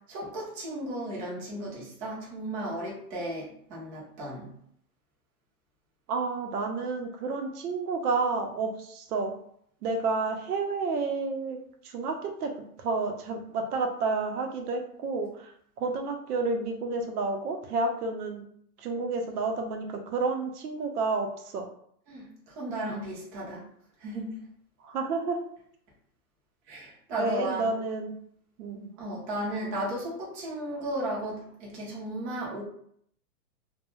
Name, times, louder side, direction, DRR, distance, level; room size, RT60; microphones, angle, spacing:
voice 1, 0.0-4.5 22.1-23.6 24.0-24.4 26.7-27.7 29.0-32.6, right 1 dB, 20° right, -5 dB, 0.5 m, -35 dB
voice 2, 6.1-9.4 9.8-11.6 11.8-12.5 12.8-18.4 18.8-21.7 24.8-25.4 27.1-28.1 28.6-28.9, right 3 dB, 70° right, 3 dB, 0.7 m, -30 dB
2.2 x 2.2 x 3.0 m, 0.65 s
hypercardioid pair, 140°, 47 cm